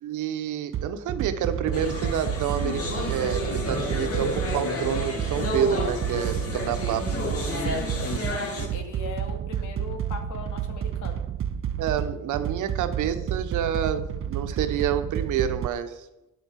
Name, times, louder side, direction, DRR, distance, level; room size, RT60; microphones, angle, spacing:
voice 1, 0.0-7.1 11.8-16.0, right 9 dB, 85° right, 9 dB, 1.1 m, -28 dB
sound 1, 0.7-15.7, right 9 dB, 45° right, 0.6 m, -30 dB
sound 2, 1.7-8.7, left 2 dB, 50° left, 2.8 m, -31 dB
voice 2, 7.5-7.9 8.3-11.2, left 3 dB, 75° left, 4 dB, 2.3 m, -39 dB
10.0 x 8.3 x 5.8 m, 0.92 s
cardioid pair, 90°, 30 cm